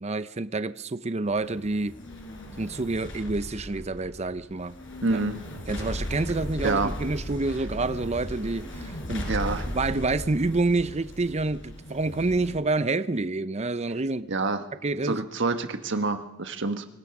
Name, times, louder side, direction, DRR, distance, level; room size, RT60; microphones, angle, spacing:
voice 1, 0.0-1.9 2.6-4.7 5.0-5.2 5.7-9.4 9.7-14.3 14.8-15.2, right 3 dB, 30° right, 13 dB, 0.7 m, -28 dB
sound 1, 1.3-12.5, equal, 65° left, 5.2 m, -37 dB
voice 2, 5.0-5.4 6.6-6.9 9.3-9.6 14.3-14.6 15.0-16.9, right 3 dB, 60° right, 8 dB, 1.5 m, -27 dB
25.5 x 19.0 x 6.1 m, 0.97 s
head